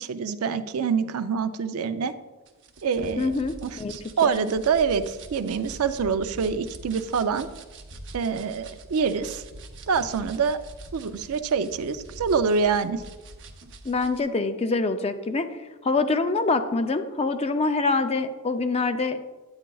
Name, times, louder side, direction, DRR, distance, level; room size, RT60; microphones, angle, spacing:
voice 1, 0.0-2.1 2.8-3.3 3.6-7.5 8.1-9.4 9.9-10.6 10.9-13.0, right 5 dB, 75° right, 11 dB, 0.4 m, -25 dB
sound 1, 2.5-14.2, right 2 dB, 55° right, 0.8 m, -44 dB
voice 2, 3.2-3.9 4.2-4.3 13.8-15.5 15.8-19.2, left 3 dB, 25° left, 9 dB, 0.4 m, -25 dB
10.0 x 8.7 x 2.3 m, 1.2 s
head